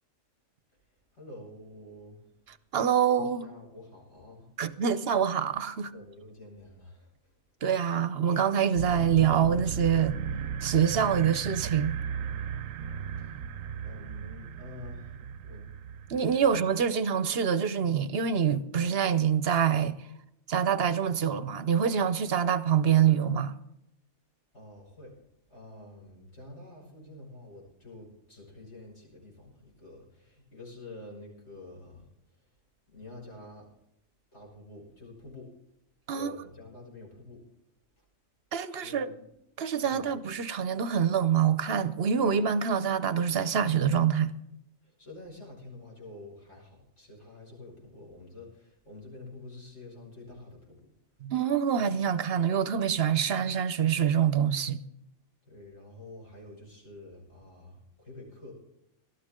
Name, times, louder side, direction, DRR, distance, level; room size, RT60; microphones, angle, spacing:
voice 1, 1.1-2.2 3.2-4.5 5.9-7.1 13.1-13.4 13.8-15.7 24.5-25.2 25.5-32.1 32.9-33.7 34.3-35.5 36.1-37.5 38.7-39.3 39.8-40.1 44.8-50.9 55.4-58.5, left 2 dB, 60° left, 6.2 m, -48 dB
voice 2, 2.7-3.5 4.6-5.9 7.6-10.1 10.6-12.0 16.1-19.9 20.5-23.5 36.1-36.4 38.5-39.1 39.6-44.3 51.2-54.8, right 8 dB, 55° right, 0.9 m, -25 dB
sound 1, 8.8-16.9, right 8 dB, 90° right, 1.1 m, -36 dB
18.5 x 13.0 x 3.7 m
omnidirectional pair, 1.3 m